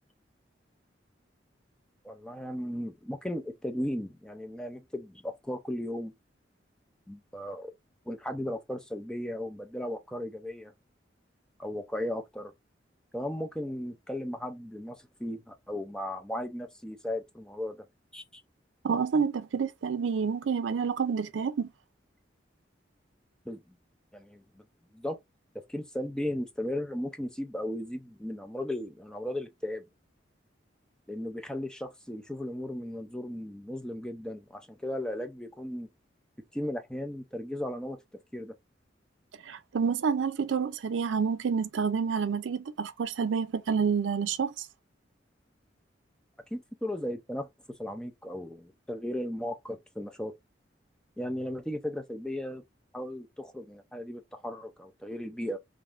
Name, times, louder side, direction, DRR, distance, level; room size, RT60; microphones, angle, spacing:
voice 1, 2.0-6.1 7.1-7.7 8.1-10.7 11.6-12.5 13.1-17.8 18.1-18.4 23.5-23.8 24.1-24.6 24.9-25.2 25.7-29.8 31.1-35.9 36.5-38.0 38.3-38.5 46.5-47.5 47.8-50.3 51.2-52.6 52.9-55.6, left 1 dB, 5° left, 0.4 m, -36 dB
voice 2, 18.8-21.7 39.5-44.7, right 6 dB, 90° right, 0.4 m, -28 dB
3.4 x 2.5 x 2.4 m
head